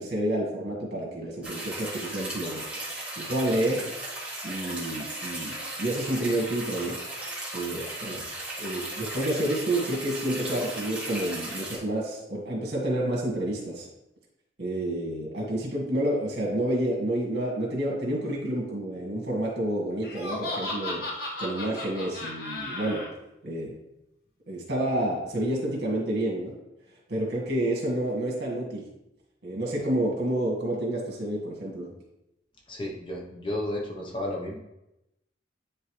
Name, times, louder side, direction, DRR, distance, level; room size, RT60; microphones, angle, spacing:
voice 1, 0.0-2.7 3.2-3.9 4.4-7.0 7.5-8.2 8.6-13.9 14.6-21.1 21.4-23.1 23.4-23.8 24.5-26.6 27.1-28.9 29.4-31.9, right 1 dB, 65° right, -2 dB, 1.9 m, -29 dB
sound 1, 1.4-11.8, right 1 dB, 5° right, 1.4 m, -36 dB
Laughter, 20.0-23.1, left 2 dB, 55° left, 1.3 m, -34 dB
voice 2, 32.7-34.6, left 1 dB, 25° left, -1 dB, 1.0 m, -33 dB
10.0 x 3.4 x 3.3 m, 0.89 s
head